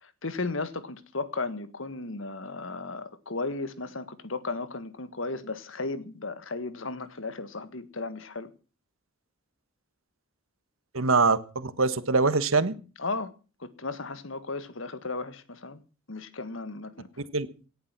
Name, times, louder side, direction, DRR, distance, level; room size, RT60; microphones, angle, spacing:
voice 1, 0.0-8.5 13.0-13.3 13.6-15.8 16.1-17.1, left 3 dB, 70° left, 1.6 m, -35 dB
voice 2, 10.9-12.7 17.3-17.7, right 4 dB, 85° right, 1.5 m, -24 dB
18.0 x 11.0 x 6.1 m
head